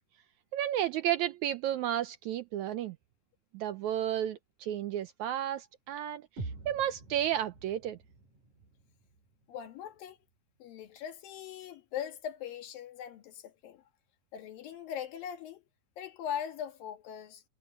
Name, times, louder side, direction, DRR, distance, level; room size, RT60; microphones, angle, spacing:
voice 1, 0.5-3.0 3.5-8.0, right 11 dB, 75° right, 1.8 m, -32 dB
sound 1, 6.4-10.3, right 3 dB, 60° right, 5.9 m, -47 dB
voice 2, 9.5-10.2 10.6-13.8 14.3-15.6 16.0-17.4, left 9 dB, 80° left, 3.4 m, -40 dB
omnidirectional pair, 4.0 m